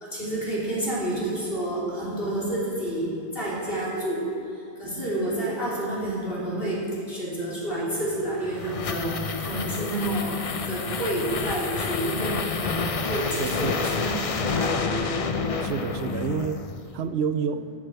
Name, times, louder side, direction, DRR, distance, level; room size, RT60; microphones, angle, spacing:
voice 1, 0.0-4.2 4.8-10.4 10.7-15.1, right 1 dB, 65° left, -7 dB, 3.8 m, -29 dB
sound 1, 8.1-17.0, left 4 dB, 40° left, 0.6 m, -29 dB
voice 2, 13.3-13.8 15.6-16.6 16.9-17.6, right 6 dB, 80° right, 12 dB, 0.9 m, -28 dB
11.5 x 8.6 x 7.9 m, 2.4 s
omnidirectional pair, 1.1 m